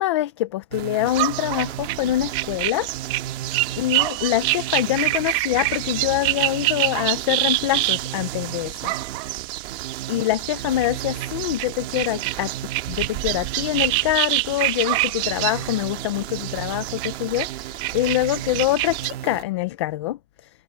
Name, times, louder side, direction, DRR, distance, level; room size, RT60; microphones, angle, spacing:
voice 1, 0.0-2.9 3.8-8.9 10.1-12.5 12.9-20.5, left 15 dB, 25° left, 0.4 m, -25 dB
sound 1, 0.7-19.4, right 13 dB, 65° right, 1.9 m, -35 dB
sound 2, 1.1-19.1, right 19 dB, 30° right, 1.3 m, -27 dB
supercardioid pair, 175°, 33 cm